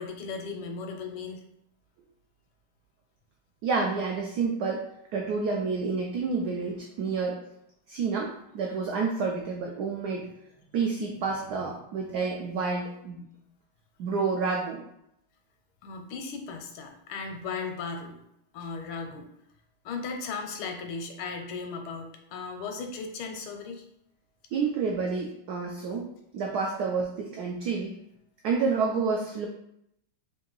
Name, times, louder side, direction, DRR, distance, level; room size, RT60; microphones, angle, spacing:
voice 1, 0.0-1.4 15.8-18.2 18.5-19.3 19.8-23.8, left 4 dB, 80° left, 3 dB, 1.5 m, -36 dB
voice 2, 3.6-4.9 5.1-7.4 7.9-10.3 10.7-13.3 14.0-14.8 24.5-26.1 26.3-27.9 28.4-29.5, right 4 dB, 85° right, 0 dB, 0.8 m, -29 dB
3.6 x 2.7 x 3.8 m, 0.78 s
omnidirectional pair, 2.3 m